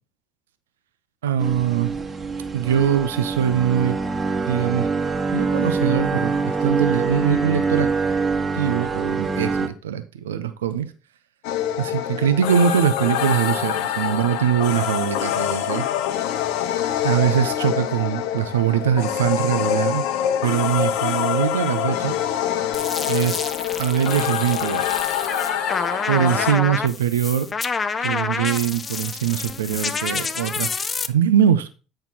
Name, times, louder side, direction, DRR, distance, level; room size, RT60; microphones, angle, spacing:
voice 1, 1.2-1.9 2.5-4.0 4.5-4.9 5.3-7.9 8.5-10.9 11.8-15.9 17.0-20.1 20.4-22.2 23.1-24.9 26.1-27.5 28.0-31.7, right 9 dB, 85° right, 0.5 m, -22 dB
sound 1, 1.4-9.7, right 4 dB, 25° right, 1.4 m, -24 dB
sound 2, 11.4-26.5, left 10 dB, 70° left, 0.7 m, -25 dB
sound 3, 22.7-31.1, left 5 dB, 30° left, 0.6 m, -28 dB
8.6 x 4.5 x 4.2 m
hypercardioid pair, 65°, 0 cm